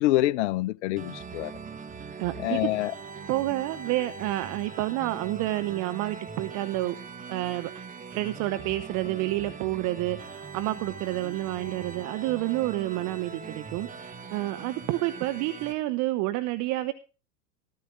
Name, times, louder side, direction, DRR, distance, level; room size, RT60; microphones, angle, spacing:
voice 1, 0.0-1.5 2.4-2.9, left 16 dB, 50° left, 0.6 m, -26 dB
sound 1, 1.0-15.7, right 5 dB, 20° right, 1.3 m, -41 dB
voice 2, 2.2-2.7 3.3-7.0 7.3-16.9, right 17 dB, 40° right, 0.8 m, -29 dB
14.0 x 13.5 x 3.7 m
hypercardioid pair, 95°, 45 cm